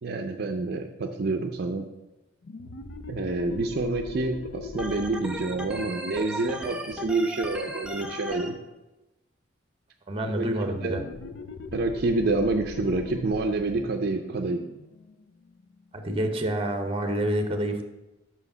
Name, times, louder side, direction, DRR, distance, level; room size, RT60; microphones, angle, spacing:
voice 1, 0.0-1.9 3.1-8.6 10.3-11.0 11.7-14.6, right 3 dB, 55° right, 5 dB, 0.5 m, -28 dB
sound 1, 2.4-7.7 10.8-16.1, left 4 dB, 60° left, 0.5 m, -41 dB
Organ, 4.8-8.5, equal, 5° right, 0.7 m, -36 dB
voice 2, 10.1-11.0 15.9-17.8, right 1 dB, 30° right, 6 dB, 0.9 m, -28 dB
5.8 x 4.9 x 6.6 m, 1.0 s
head